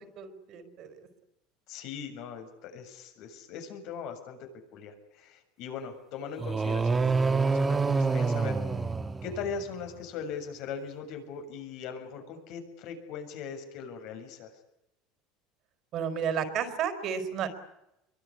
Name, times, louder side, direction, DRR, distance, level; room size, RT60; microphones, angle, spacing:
voice 1, 0.2-1.0 15.9-17.5, right 8 dB, 50° right, 10 dB, 4.6 m, -32 dB
voice 2, 1.7-8.6 9.2-14.5, left 6 dB, 65° left, 5 dB, 7.0 m, -40 dB
sound 1, 6.4-9.7, right 4 dB, 20° right, 1.6 m, -27 dB
24.0 x 23.0 x 9.9 m, 0.86 s
supercardioid pair, 110°, 0 cm